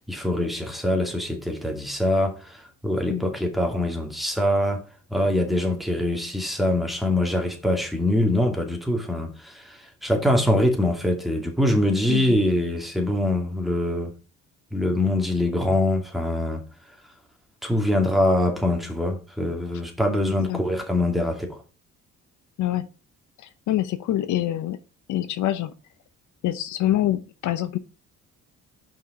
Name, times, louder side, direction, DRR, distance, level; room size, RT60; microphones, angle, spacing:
voice 1, 0.1-4.8 5.1-14.1 14.7-16.6 17.6-21.6, left 1 dB, ahead, 2.4 m, -24 dB
voice 2, 23.4-24.8 25.1-25.7 26.4-27.8, left 13 dB, 75° left, 0.8 m, -25 dB
5.8 x 5.2 x 5.0 m
cardioid pair, 90°, 30 cm